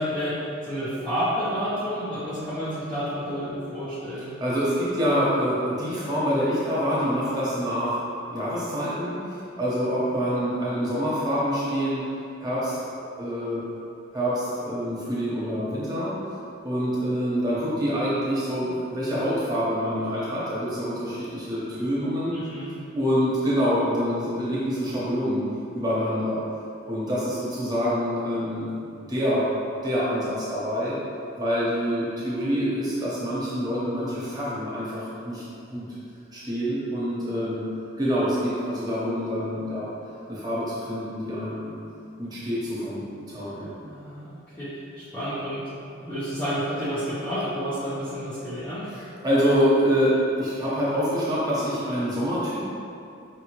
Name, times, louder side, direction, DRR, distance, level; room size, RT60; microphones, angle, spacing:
voice 1, 0.0-4.4 22.3-22.8 43.8-45.7 46.0-48.9, equal, 5° left, -13 dB, 0.6 m, -30 dB
voice 2, 4.4-8.0 8.3-12.0 12.4-13.6 14.1-16.1 16.6-22.3 22.9-25.4 25.7-26.4 26.9-28.7 29.1-29.5 29.8-31.0 31.4-35.4 35.7-35.8 36.3-37.6 38.0-39.9 40.3-41.7 42.2-43.7 48.9-52.6, equal, 20° right, -9 dB, 0.9 m, -26 dB
4.9 x 2.8 x 3.0 m, 2.6 s
head